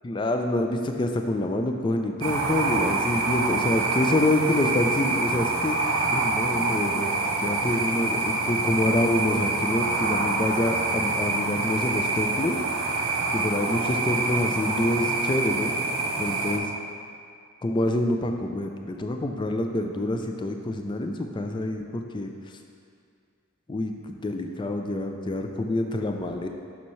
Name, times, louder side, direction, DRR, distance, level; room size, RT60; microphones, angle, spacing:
voice 1, 0.0-5.8 6.1-7.1 7.4-12.6 13.3-15.7 16.2-16.7 17.6-22.3 23.7-26.5, left 1 dB, 20° left, 4 dB, 0.3 m, -27 dB
sound 1, 2.2-16.6, right 3 dB, 70° right, 0.7 m, -26 dB
7.0 x 5.5 x 3.1 m, 2.3 s
head